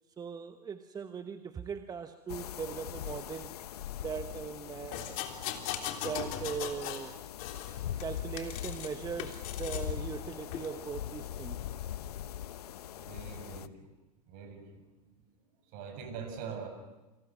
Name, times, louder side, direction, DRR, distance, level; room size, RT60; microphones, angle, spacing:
voice 1, 0.2-3.6 4.0-5.2 6.0-7.2 8.0-11.7 16.5-16.6, right 6 dB, 20° right, 9 dB, 1.1 m, -40 dB
sound 1, 2.3-13.7, left 10 dB, 70° left, 1.0 m, -41 dB
sound 2, 4.9-7.1 7.4-8.9 9.2-9.9 10.5-10.7, left 10 dB, 45° left, 3.3 m, -39 dB
voice 2, 13.0-13.9 14.3-15.1 15.7-16.7, right 6 dB, 45° right, 7 dB, 7.0 m, -43 dB
30.0 x 26.5 x 6.2 m, 1.1 s
hypercardioid pair, 100°, 20 cm